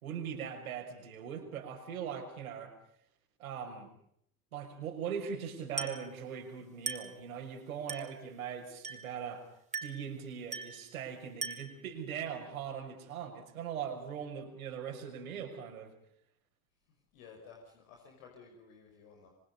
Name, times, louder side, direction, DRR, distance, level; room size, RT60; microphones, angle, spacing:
voice 1, 0.0-2.7 3.4-3.9 4.5-9.5 9.8-15.9, right 7 dB, 75° right, 4 dB, 6.4 m, -40 dB
Glass, 5.8-6.1 6.9-7.2 7.9-8.2 8.8-9.2 9.7-10.1 10.5-10.8 11.4-11.8, right 4 dB, 15° right, 5.4 m, -39 dB
voice 2, 17.1-19.3, left 5 dB, 65° left, 2 dB, 5.9 m, -54 dB
27.0 x 25.5 x 5.5 m, 0.70 s
figure-of-eight pair, 65°, 43 cm